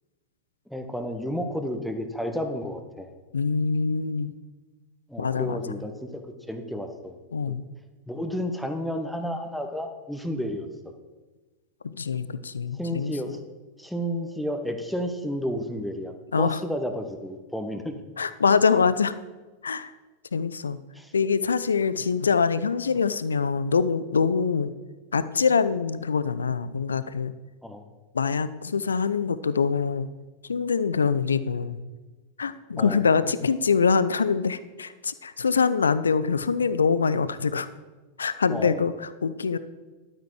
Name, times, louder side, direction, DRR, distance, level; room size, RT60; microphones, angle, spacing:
voice 1, 0.7-3.1 5.1-6.2 6.5-7.2 7.5-7.6 8.1-10.9 12.7-13.4 13.8-18.0 20.9-21.1 27.6-27.9 32.8-33.0 38.5-38.9, equal, ahead, 6 dB, 1.2 m, -32 dB
voice 2, 3.3-4.3 5.2-5.6 7.3-7.6 11.8-13.1 16.3-16.6 18.2-19.1 19.6-19.9 20.3-20.8 21.1-24.7 25.1-27.3 28.1-30.1 30.5-31.8 32.4-37.7 38.2-39.6, left 5 dB, 70° left, 15 dB, 0.5 m, -24 dB
11.5 x 8.9 x 4.8 m, 1.3 s
figure-of-eight pair, 90°, 0 cm